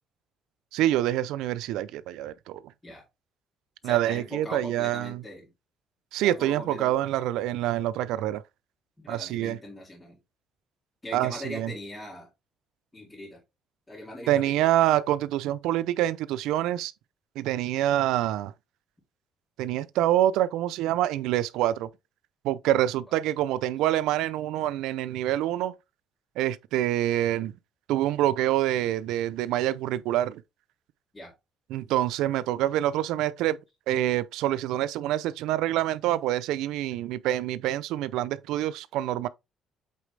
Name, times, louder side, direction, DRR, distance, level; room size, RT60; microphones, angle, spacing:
voice 1, 0.7-2.6 3.8-5.2 6.1-8.4 9.1-9.6 11.1-11.7 14.3-16.9 17.4-18.5 19.6-21.9 22.4-25.7 26.4-27.5 27.9-30.4 31.7-33.6 33.9-39.3, right 13 dB, 90° right, 0.5 m, -26 dB
voice 2, 3.8-5.5 6.2-7.0 9.0-10.2 11.0-12.3 12.9-13.4 13.9-14.7 31.1-31.3, left 1 dB, 15° left, 2.4 m, -40 dB
8.3 x 4.0 x 3.3 m
cardioid pair, 150°, 0 cm